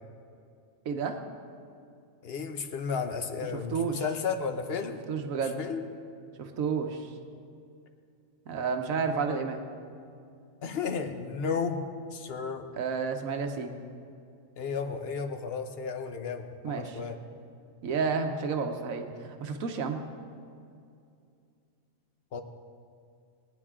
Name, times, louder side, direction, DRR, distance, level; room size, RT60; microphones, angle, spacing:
voice 1, 0.8-1.2 3.7-4.0 5.1-5.6 6.4-7.1 8.5-9.6 12.7-13.7 16.6-17.0 17.8-20.0, right 5 dB, 85° right, 5 dB, 1.3 m, -31 dB
voice 2, 2.2-5.0 5.4-5.8 9.3-9.4 10.6-11.8 12.1-12.7 14.6-17.2 22.3-22.4, left 5 dB, 50° left, 6 dB, 1.0 m, -33 dB
20.0 x 9.9 x 3.7 m, 2.4 s
omnidirectional pair, 1.4 m